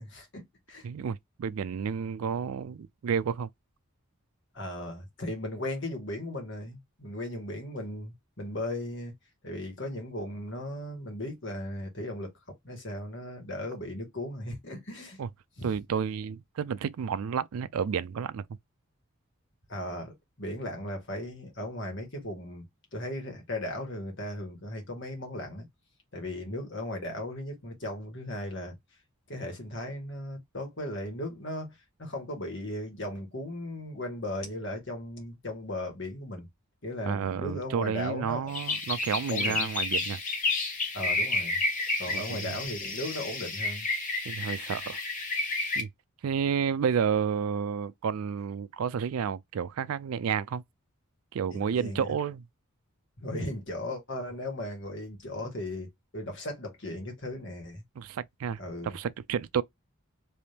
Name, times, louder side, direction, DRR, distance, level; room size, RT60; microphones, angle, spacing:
voice 1, 0.0-0.9 4.5-9.1 9.4-15.2 15.6-15.7 19.7-22.6 22.9-25.7 26.1-28.7 29.3-36.5 36.8-38.5 39.3-39.7 40.9-41.6 42.0-43.9 51.5-52.2 53.2-57.8 58.6-58.9, left 1 dB, 55° left, 1.8 m, -37 dB
voice 2, 0.8-3.5 15.2-15.3 15.6-18.4 37.0-40.2 42.1-42.5 44.3-45.0 45.8-45.9 46.2-50.6 51.3-52.4 58.0-59.6, right 7 dB, 80° right, 0.4 m, -31 dB
sound 1, 38.5-45.8, left 3 dB, 35° left, 1.2 m, -31 dB
3.4 x 3.0 x 2.8 m
head